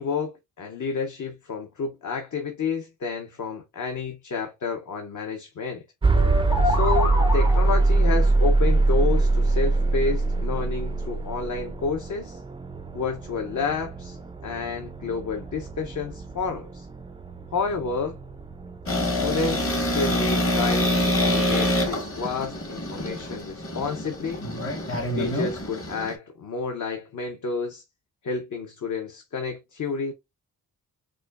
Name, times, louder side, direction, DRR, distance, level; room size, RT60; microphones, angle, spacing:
voice 1, 0.0-5.8 6.6-12.4 12.9-16.9 17.5-18.2 19.1-24.4 25.1-27.8 28.2-30.1, left 4 dB, 55° left, 0.8 m, -30 dB
sound 1, 6.0-22.0, right 3 dB, 15° right, 0.3 m, -24 dB
sound 2, 6.1-8.0, left 4 dB, 75° left, 1.3 m, -27 dB
sound 3, 18.9-26.2, left 1 dB, 35° left, 1.3 m, -26 dB
4.9 x 2.2 x 2.3 m
wide cardioid pair, 95°, 37 cm